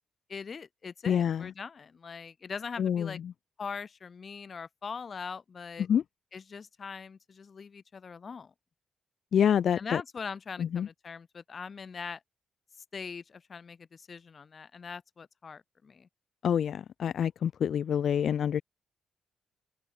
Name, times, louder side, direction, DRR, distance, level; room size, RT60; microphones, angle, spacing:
voice 1, 0.3-3.2 3.6-5.9 6.3-8.5 9.8-12.2 12.9-16.1, left 5 dB, 40° left, 2.7 m, -41 dB
voice 2, 1.1-1.5 2.8-3.3 5.9-6.0 9.3-10.0 10.6-10.9 16.4-18.6, left 8 dB, 65° left, 1.3 m, -27 dB
cardioid pair, 115°, 0 cm